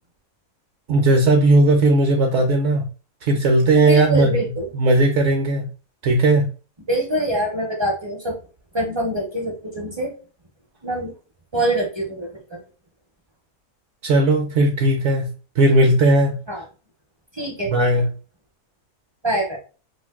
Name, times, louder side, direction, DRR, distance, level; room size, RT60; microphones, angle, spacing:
voice 1, 0.9-2.8 3.2-4.4 4.7-5.7 6.0-6.5 14.0-15.3 15.6-16.6 17.7-18.1, right 2 dB, 65° right, 2 dB, 0.9 m, -17 dB
voice 2, 3.7-4.7 6.9-8.4 8.7-10.1 10.8-11.1 11.5-12.6 16.5-16.6 17.3-17.7 19.2-19.6, right 1 dB, 30° right, -1 dB, 0.5 m, -24 dB
2.5 x 2.5 x 3.5 m, 0.37 s
omnidirectional pair, 1.5 m